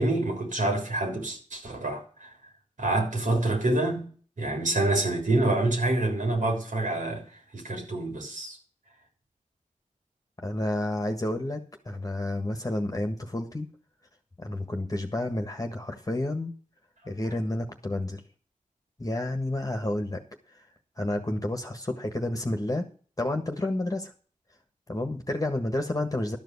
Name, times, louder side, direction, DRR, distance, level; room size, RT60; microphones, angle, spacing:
voice 1, 0.0-2.3 2.8-4.1 4.4-7.2 7.5-8.6, right 2 dB, 75° right, 3.5 m, -27 dB
voice 2, 10.4-13.7 14.4-16.5 17.0-18.2 19.0-20.2 21.0-22.9 23.2-24.1 24.9-26.4, left 1 dB, 25° left, 1.5 m, -30 dB
12.5 x 5.1 x 8.2 m
wide cardioid pair, 65°, 13 cm